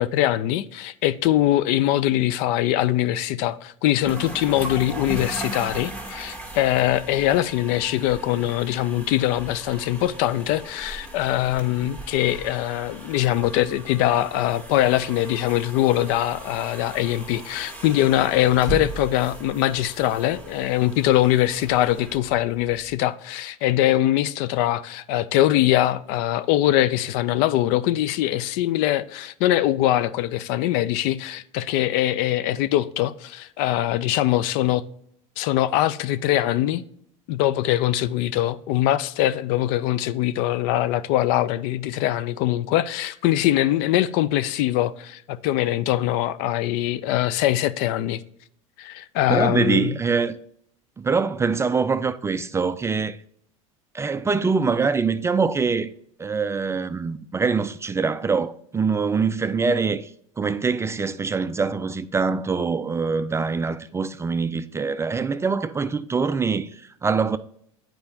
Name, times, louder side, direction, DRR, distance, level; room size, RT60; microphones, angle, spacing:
voice 1, 0.0-34.8 35.4-36.8 37.3-48.2 48.8-50.0, left 13 dB, 60° left, 0.4 m, -22 dB
sound 1, 4.0-22.9, right 2 dB, 10° left, 1.7 m, -38 dB
voice 2, 49.3-50.4 51.0-53.2 53.9-55.9 56.2-60.1 60.4-67.4, right 5 dB, 15° right, 0.3 m, -24 dB
8.5 x 4.5 x 2.7 m
hypercardioid pair, 90°, 17 cm